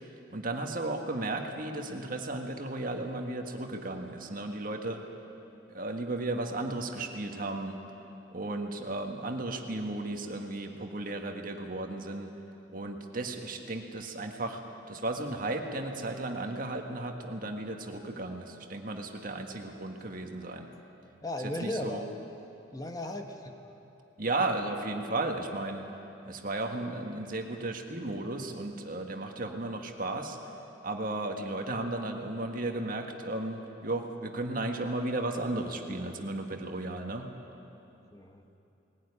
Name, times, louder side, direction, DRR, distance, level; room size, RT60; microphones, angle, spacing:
voice 1, 0.3-5.0 5.7-7.8 8.3-12.3 12.7-14.6 14.9-20.7 21.4-22.0 24.2-25.9 26.3-30.4 30.8-37.3, right 2 dB, 50° right, 4 dB, 1.7 m, -34 dB
voice 2, 21.2-22.1 22.7-23.6 38.1-38.4, left 1 dB, 20° left, 4 dB, 1.1 m, -36 dB
19.5 x 17.0 x 9.9 m, 2.9 s
head